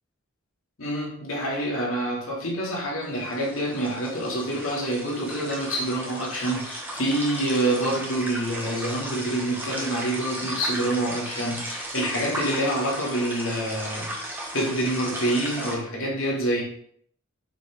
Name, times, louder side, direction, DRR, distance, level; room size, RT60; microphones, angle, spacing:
voice 1, 0.8-14.1 14.5-16.6, right 1 dB, 80° left, -3 dB, 2.6 m, -27 dB
sound 1, 3.0-15.8, right 1 dB, 10° right, 1.6 m, -35 dB
7.4 x 5.8 x 3.8 m, 0.65 s
head